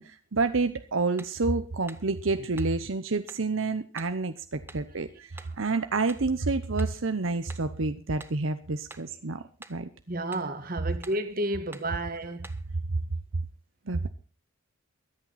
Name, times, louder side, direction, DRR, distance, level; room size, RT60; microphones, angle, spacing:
voice 1, 0.0-5.3 5.6-9.4 9.7-9.9 12.9-13.0 13.9-14.1, right 3 dB, 75° right, 0.9 m, -28 dB
sound 1, 1.2-1.4 1.9-2.1 2.6-2.8 3.3-3.5 4.0-4.2 4.7-4.9 5.4-5.6 6.1-6.3 6.8-7.0 7.5-7.7 8.2-8.4 8.9-9.1 9.6-9.8 10.3-10.5 11.0-11.3 11.7-11.9 12.4-12.7, right 2 dB, 10° right, 0.9 m, -48 dB
voice 2, 10.1-12.5, right 1 dB, 45° right, 1.7 m, -32 dB
23.5 x 8.8 x 4.1 m
head